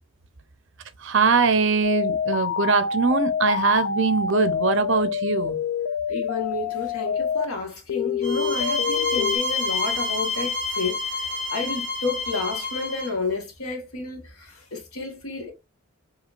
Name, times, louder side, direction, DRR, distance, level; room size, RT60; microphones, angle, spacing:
voice 1, 1.0-5.6, right 4 dB, 55° right, 0.6 m, -22 dB
sound 1, 1.8-7.5 7.9-9.4, left 7 dB, 65° left, 0.5 m, -27 dB
voice 2, 6.1-11.2 11.5-14.3 14.7-15.5, left 3 dB, 85° left, 1.4 m, -30 dB
sound 2, 8.2-13.1, left 3 dB, 45° left, 1.2 m, -28 dB
4.8 x 2.9 x 2.4 m
head